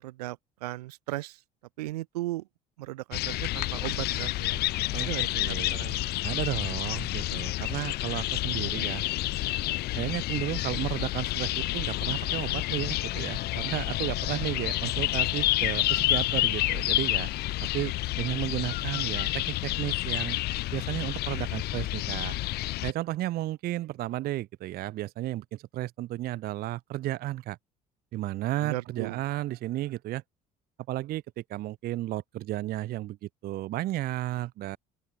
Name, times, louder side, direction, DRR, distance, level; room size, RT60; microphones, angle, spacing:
voice 1, 0.0-1.4 1.8-2.5 2.8-4.6 5.0-6.1 28.6-29.2, right 17 dB, 90° right, 1.0 m, -36 dB
sound 1, 3.1-22.9, left 17 dB, 55° left, 0.4 m, -29 dB
voice 2, 5.3-5.8 6.2-9.0 9.9-17.3 17.6-20.4 20.7-22.4 22.8-27.6 28.1-30.2 30.9-34.8, right 15 dB, 50° right, 0.5 m, -33 dB
open air
hypercardioid pair, 70°, 20 cm